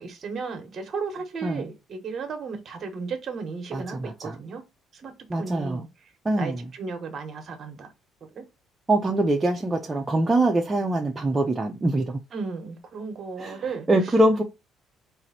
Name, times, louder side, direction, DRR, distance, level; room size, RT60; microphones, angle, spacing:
voice 1, 0.0-4.6 4.9-5.1 5.4-5.9 6.4-7.9 8.3-8.4 12.3-13.9, right 5 dB, 35° right, 1.1 m, -34 dB
voice 2, 3.7-4.4 5.3-5.8 6.2-6.6 8.9-12.2 13.4-14.4, right 1 dB, 15° right, 0.5 m, -24 dB
4.4 x 2.5 x 4.1 m
cardioid pair, 170°, 0 cm